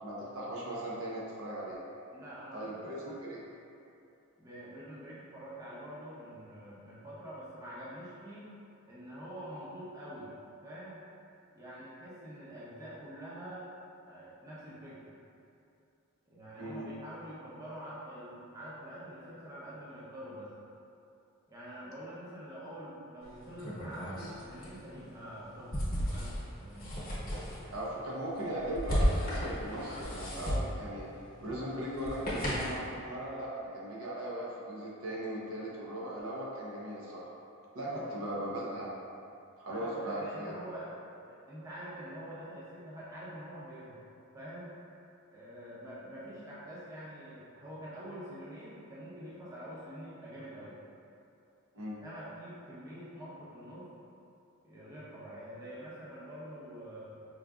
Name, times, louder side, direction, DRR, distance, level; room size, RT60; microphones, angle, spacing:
voice 1, 0.0-1.8 2.5-3.4 16.6-16.9 27.7-31.1 31.4-37.3 37.7-38.9 39.6-40.5 51.7-52.0, right 1 dB, 75° right, -5 dB, 0.7 m, -38 dB
voice 2, 2.1-3.2 4.4-8.5 8.9-10.4 10.6-11.0 11.5-13.7 14.0-15.1 16.3-20.5 21.5-26.9 37.8-38.1 39.7-40.9 41.3-44.0 44.3-44.8 45.3-50.8 52.0-53.9 54.6-57.1, right 1 dB, 15° right, -10 dB, 0.6 m, -46 dB
sound 1, 23.2-32.9, equal, 40° left, 0.9 m, -35 dB
4.8 x 2.5 x 2.3 m, 2.7 s
head